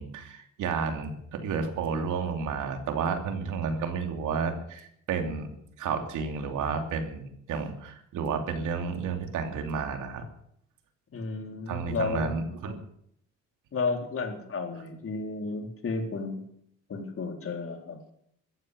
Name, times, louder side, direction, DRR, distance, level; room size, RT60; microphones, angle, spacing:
voice 1, 0.0-5.5 5.8-10.3 11.7-12.8, right 5 dB, 80° right, 5 dB, 2.9 m, -31 dB
voice 2, 11.1-12.4 13.7-16.4 16.9-18.0, left 4 dB, 45° left, 3 dB, 3.8 m, -32 dB
15.0 x 14.0 x 6.6 m, 0.70 s
cardioid pair, 90°, 30 cm